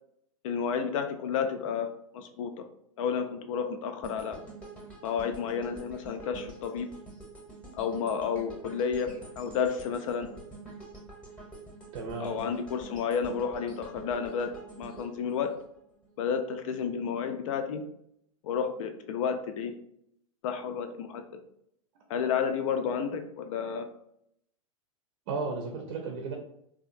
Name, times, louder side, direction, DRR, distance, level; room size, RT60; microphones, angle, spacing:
voice 1, 0.4-2.5 3.0-4.4 5.0-6.9 7.7-10.3 12.2-14.5 14.8-15.5 16.2-17.8 18.4-19.7 20.4-21.2 22.1-23.9, left 6 dB, 65° left, 7 dB, 0.5 m, -31 dB
sound 1, 4.0-16.2 16.6-16.8, right 3 dB, 5° left, 0.8 m, -47 dB
voice 2, 11.9-12.5 25.3-26.4, right 4 dB, 60° right, 1 dB, 0.5 m, -34 dB
2.7 x 2.3 x 2.5 m, 0.73 s
hypercardioid pair, 110°, 18 cm